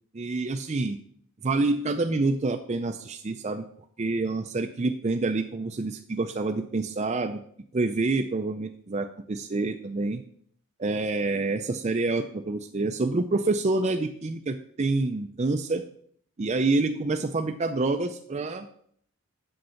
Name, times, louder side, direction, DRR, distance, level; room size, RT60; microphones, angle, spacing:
voice 1, 0.1-1.0 1.4-3.7 4.0-7.4 7.7-10.2 10.8-15.8 16.4-18.7, right 3 dB, 30° right, 5 dB, 0.4 m, -27 dB
7.8 x 6.6 x 5.7 m, 0.62 s
head